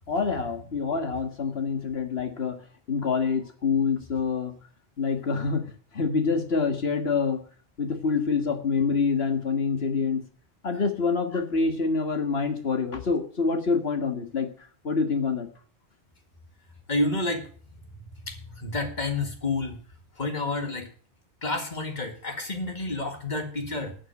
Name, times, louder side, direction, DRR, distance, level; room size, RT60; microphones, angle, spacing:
voice 1, 0.1-2.6 2.9-4.5 5.0-5.6 5.9-7.4 7.8-10.2 10.6-14.5 14.8-15.5, left 5 dB, 65° left, 6 dB, 1.9 m, -26 dB
voice 2, 16.9-17.5 18.2-19.8 20.2-20.9 21.4-24.0, left 2 dB, 40° left, 5 dB, 2.1 m, -29 dB
12.0 x 6.4 x 7.7 m, 0.44 s
omnidirectional pair, 1.1 m